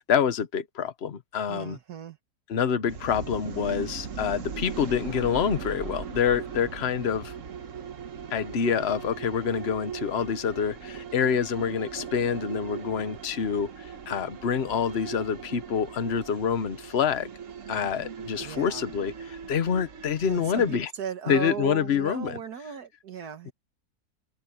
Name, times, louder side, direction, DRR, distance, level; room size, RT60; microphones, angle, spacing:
voice 1, 0.0-1.8 2.5-7.3 8.3-17.3 17.7-20.9 21.3-22.4 23.5-23.6, left 7 dB, 45° left, 1.2 m, -27 dB
voice 2, 1.5-2.2 18.4-18.9 20.3-23.5, right 8 dB, 75° right, 1.9 m, -37 dB
sound 1, 2.9-20.9, right 6 dB, 55° right, 1.5 m, -39 dB
omnidirectional pair, 1.7 m